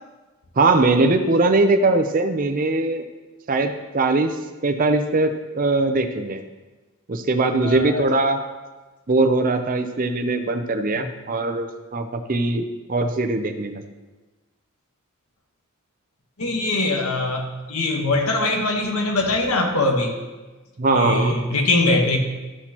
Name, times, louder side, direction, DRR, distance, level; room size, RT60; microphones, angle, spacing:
voice 1, 0.6-3.0 3.5-6.4 7.1-8.5 9.1-13.8 20.8-21.3, right 2 dB, 40° right, 8 dB, 0.6 m, -21 dB
voice 2, 7.6-8.0 10.9-11.0 16.4-20.1 20.9-22.2, left 2 dB, 80° left, 3 dB, 1.3 m, -22 dB
12.5 x 6.3 x 2.9 m, 1.2 s
head